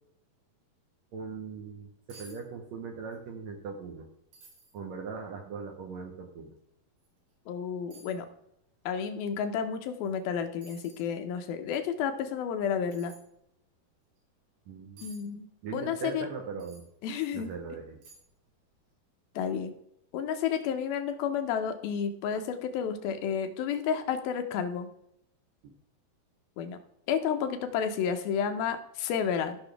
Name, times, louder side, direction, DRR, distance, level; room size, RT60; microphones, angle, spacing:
voice 1, 1.1-4.1 4.7-6.5 14.7-15.1 15.6-16.8 17.3-18.0 25.6-25.7, right 5 dB, 70° right, 2 dB, 1.7 m, -40 dB
sound 1, 1.7-1.8 2.1-2.4 2.7-3.2 3.6-3.7 4.3-4.8 5.4-5.5 7.0-7.1 7.9-8.2 10.1-10.2 10.6-11.1 12.9-13.2 15.0-15.2 16.6-16.9 17.4-17.5 18.0-18.4 18.7-18.8, right 3 dB, 90° right, 4.9 m, -53 dB
voice 2, 7.5-8.3 8.9-13.1 15.0-15.5 15.7-16.3 17.0-17.5 19.4-19.7 20.1-24.9 26.6-26.8 27.1-29.6, left 7 dB, 80° left, 7 dB, 2.6 m, -31 dB
14.0 x 6.2 x 3.4 m, 0.77 s
omnidirectional pair, 4.4 m